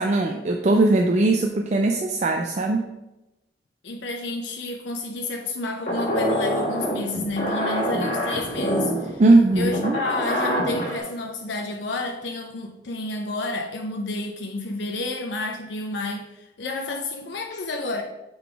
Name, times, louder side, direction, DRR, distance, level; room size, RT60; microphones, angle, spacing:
voice 1, 0.0-2.9 9.2-10.0, right 2 dB, 40° right, 3 dB, 0.4 m, -19 dB
voice 2, 3.8-9.2 9.5-18.0, left 2 dB, 80° left, 3 dB, 0.6 m, -30 dB
sound 1, 5.9-11.0, equal, 45° left, 1.7 m, -26 dB
6.8 x 3.9 x 4.6 m, 0.99 s
head